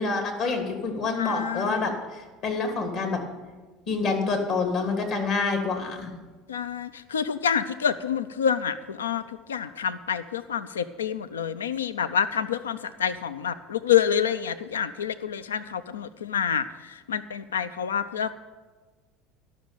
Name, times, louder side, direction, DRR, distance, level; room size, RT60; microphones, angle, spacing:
voice 1, 0.0-3.2 3.9-6.1, left 4 dB, 60° left, 3 dB, 2.8 m, -27 dB
voice 2, 1.2-1.9 6.5-18.3, left 8 dB, 90° left, 13 dB, 0.4 m, -28 dB
12.0 x 6.3 x 9.1 m, 1.3 s
hypercardioid pair, 75°, 0 cm